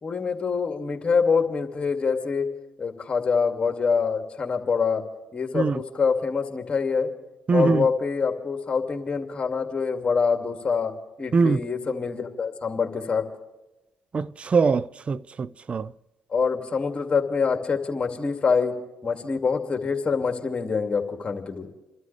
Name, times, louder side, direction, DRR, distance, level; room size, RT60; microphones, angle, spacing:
voice 1, 0.0-2.5 2.8-5.0 5.3-7.1 7.5-13.3 16.3-18.7 19.0-21.7, left 5 dB, 40° left, 2.4 m, -25 dB
voice 2, 7.5-7.9 11.3-11.6 14.1-15.9, right 4 dB, 45° right, 0.5 m, -22 dB
29.5 x 13.0 x 3.4 m
hypercardioid pair, 50°, 3 cm